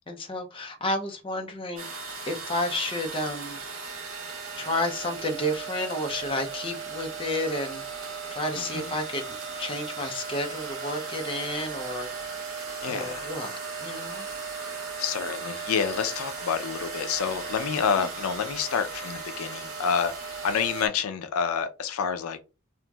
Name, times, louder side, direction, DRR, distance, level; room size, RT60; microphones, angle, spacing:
voice 1, 0.1-3.6 4.6-7.8 8.3-12.1 12.8-14.3 18.0-18.1, left 1 dB, 25° left, 0.5 m, -31 dB
sound 1, 1.8-20.9, right 4 dB, 75° right, 0.8 m, -37 dB
voice 2, 12.8-13.3 15.0-22.4, left 6 dB, 80° left, 0.4 m, -28 dB
2.9 x 2.5 x 2.2 m
head